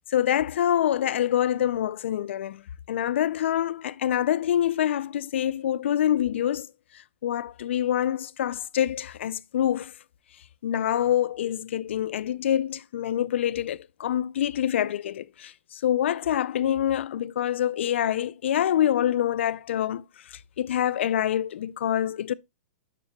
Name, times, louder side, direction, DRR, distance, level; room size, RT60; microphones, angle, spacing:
voice 1, 0.1-2.6 2.9-6.7 7.2-9.9 10.6-22.3, left 11 dB, 75° left, 0.3 m, -26 dB
7.2 x 6.6 x 2.2 m
supercardioid pair, 175°, 6 cm